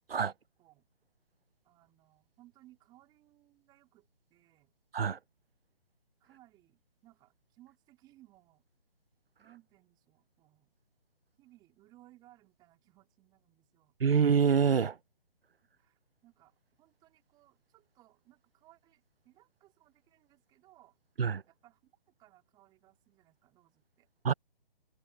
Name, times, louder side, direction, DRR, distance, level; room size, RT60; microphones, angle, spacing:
voice 1, 0.2-0.9 1.6-4.7 6.2-8.7 9.4-10.7 11.4-14.0 15.7-21.0 21.5-21.9 22.2-24.1, right 16 dB, 15° right, 4.0 m, -63 dB
voice 2, 14.0-15.0 21.2-21.4 24.2-24.3, right 6 dB, 80° right, 1.1 m, -26 dB
hypercardioid pair, 160°, 29 cm